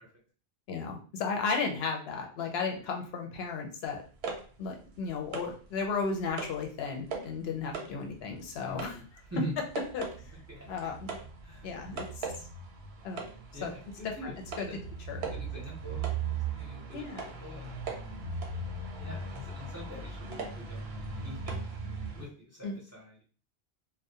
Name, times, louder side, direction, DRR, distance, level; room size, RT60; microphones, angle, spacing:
voice 1, 0.7-4.0 4.6-8.9 9.9-10.0 10.7-11.1 11.6-12.5 13.0-13.2 13.6-13.7 14.6-14.7 15.1-15.2 16.9-17.3 22.6-22.8, left 5 dB, 75° left, 2 dB, 0.8 m, -34 dB
sound 1, 4.0-5.7 6.0-6.6 7.1-7.4 7.7-22.3, right 4 dB, 75° right, 0.8 m, -38 dB
voice 2, 8.7-9.0 9.3-9.5 10.3-10.7 11.4-11.7 13.5-14.3 14.7-14.8 15.1-17.8 19.0-21.0 21.2-21.7 22.1-23.2, equal, 20° right, -5 dB, 0.6 m, -43 dB
2.3 x 2.1 x 2.7 m, 0.40 s
omnidirectional pair, 1.1 m